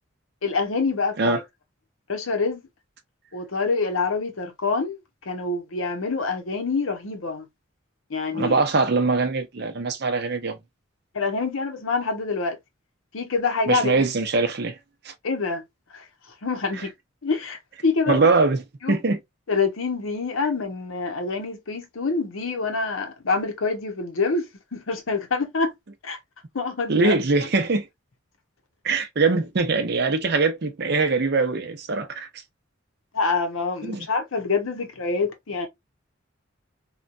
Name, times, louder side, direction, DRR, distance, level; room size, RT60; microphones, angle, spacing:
voice 1, 0.4-1.4 2.1-2.6 3.3-5.0 5.3-7.5 8.1-8.6 11.1-12.6 13.1-13.9 15.2-15.6 15.9-16.1 16.4-16.9 17.2-18.2 18.8-19.0 19.5-24.5 24.7-25.7 26.0-26.2 26.5-27.2 33.1-35.7, left 4 dB, 85° left, 0.9 m, -26 dB
voice 2, 8.3-10.6 13.7-14.8 15.1-15.2 18.1-18.6 18.9-19.2 26.9-27.9 28.8-32.3 33.8-34.1, right 3 dB, 55° right, 0.6 m, -22 dB
3.1 x 2.2 x 2.4 m
head